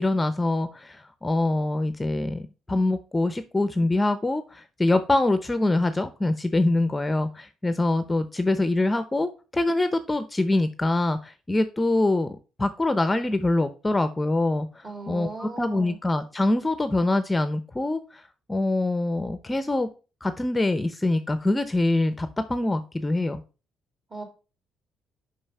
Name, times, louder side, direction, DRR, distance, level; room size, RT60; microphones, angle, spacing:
voice 1, 0.0-18.2 18.5-19.9 20.2-23.4, left 2 dB, 15° left, 11 dB, 0.7 m, -24 dB
voice 2, 14.8-16.0 24.1-24.2, right 3 dB, 30° right, 4 dB, 3.0 m, -38 dB
5.5 x 5.5 x 5.5 m, 0.33 s
cardioid pair, 90°, 0 cm